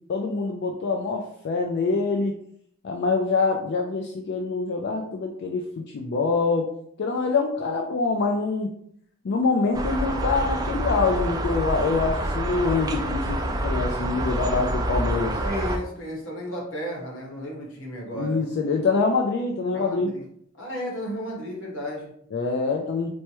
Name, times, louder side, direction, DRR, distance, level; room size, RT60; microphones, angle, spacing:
voice 1, 0.1-2.4 2.8-5.7 5.9-6.7 7.0-8.7 9.2-15.4 18.1-20.1 22.3-23.1, left 4 dB, 60° left, 2 dB, 0.4 m, -25 dB
sound 1, 9.7-15.8, right 1 dB, 20° right, 0.4 m, -27 dB
voice 2, 15.4-18.4 19.7-20.2 20.6-22.1, equal, 80° left, -2 dB, 1.2 m, -33 dB
4.5 x 2.1 x 2.9 m, 0.68 s
head